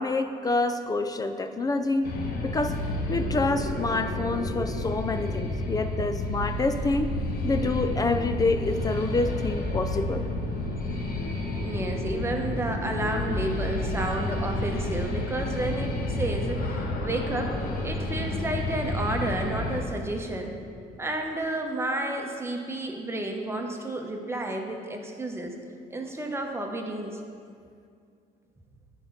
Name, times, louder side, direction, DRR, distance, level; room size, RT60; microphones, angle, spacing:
voice 1, 0.0-2.0 2.4-2.8 3.1-7.1 7.4-10.2, left 3 dB, 20° left, 9 dB, 0.4 m, -27 dB
sound 1, 2.0-19.8, left 1 dB, 60° left, 1.1 m, -30 dB
voice 2, 11.6-17.5 17.8-20.5 21.0-25.5 25.9-27.2, right 1 dB, 15° right, 2 dB, 0.9 m, -31 dB
9.0 x 4.4 x 5.8 m, 2.3 s
cardioid pair, 110°, 17 cm